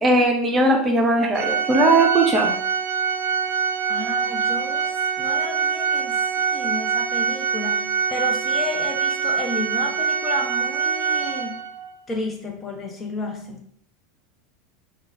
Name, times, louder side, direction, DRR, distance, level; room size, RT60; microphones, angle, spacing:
voice 1, 0.0-2.5, right 2 dB, 25° right, 2 dB, 0.8 m, -18 dB
Organ, 1.3-11.9, right 6 dB, 70° right, 0.4 m, -24 dB
voice 2, 3.9-11.6 12.1-13.6, left 2 dB, 25° left, 2 dB, 0.9 m, -32 dB
4.0 x 2.4 x 3.9 m, 0.62 s
hypercardioid pair, 90°, 0 cm